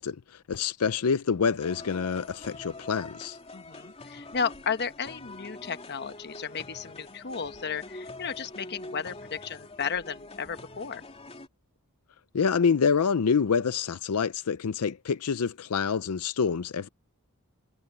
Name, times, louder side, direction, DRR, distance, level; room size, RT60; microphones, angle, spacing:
voice 1, 0.0-3.4 12.3-16.9, left 6 dB, 90° left, 0.5 m, -27 dB
sound 1, 1.6-11.5, left 2 dB, 30° left, 3.1 m, -45 dB
voice 2, 3.5-11.0, left 6 dB, 50° left, 1.1 m, -34 dB
head